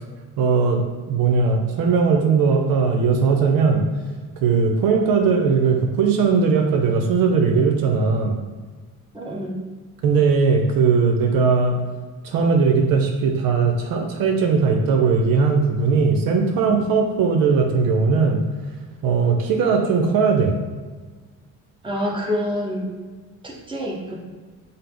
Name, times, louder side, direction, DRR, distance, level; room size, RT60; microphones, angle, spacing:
voice 1, 0.4-3.8 4.4-8.4 10.0-11.8 12.2-18.4 19.0-20.6, right 5 dB, 80° right, 2 dB, 0.6 m, -19 dB
voice 2, 9.1-9.6 21.8-22.9 23.4-24.1, equal, 15° right, -3 dB, 1.0 m, -27 dB
5.5 x 2.0 x 3.6 m, 1.4 s
cardioid pair, 85°, 34 cm